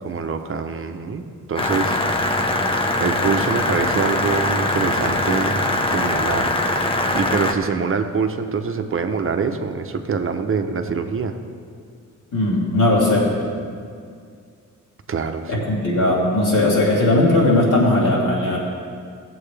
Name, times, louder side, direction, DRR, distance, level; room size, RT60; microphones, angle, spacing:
voice 1, 0.0-2.7 3.0-6.6 7.1-11.4 15.1-15.7, right 5 dB, 45° right, 7 dB, 0.7 m, -25 dB
sound 1, 1.6-7.5, left 1 dB, 15° left, 0.7 m, -21 dB
voice 2, 12.3-13.3 15.5-18.6, left 1 dB, 75° left, -6 dB, 3.2 m, -18 dB
17.5 x 7.7 x 3.3 m, 2.2 s
wide cardioid pair, 130°, 32 cm